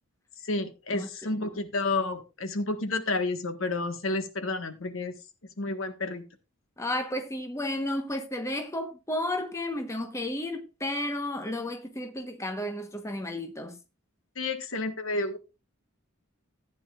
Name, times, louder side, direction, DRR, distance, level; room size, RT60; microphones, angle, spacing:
voice 1, 0.4-5.1 5.6-6.2 14.4-15.4, left 2 dB, 70° left, 1.4 m, -30 dB
voice 2, 6.8-13.8, left 1 dB, 15° left, 1.1 m, -32 dB
14.5 x 9.4 x 2.4 m
head